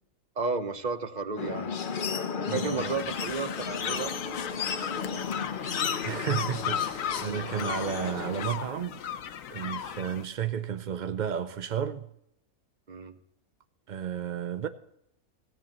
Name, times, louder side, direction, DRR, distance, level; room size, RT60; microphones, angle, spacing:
voice 1, 0.4-1.8 2.5-4.1 12.9-13.1, right 4 dB, 35° right, 0.9 m, -32 dB
sound 1, 1.4-8.5, left 6 dB, 45° left, 0.8 m, -34 dB
voice 2, 2.5-2.9 6.0-9.0 9.5-12.1 13.9-14.7, right 8 dB, 55° right, 0.5 m, -32 dB
sound 2, 2.8-10.2, left 9 dB, 70° left, 1.2 m, -36 dB
16.5 x 15.5 x 3.0 m
omnidirectional pair, 1.5 m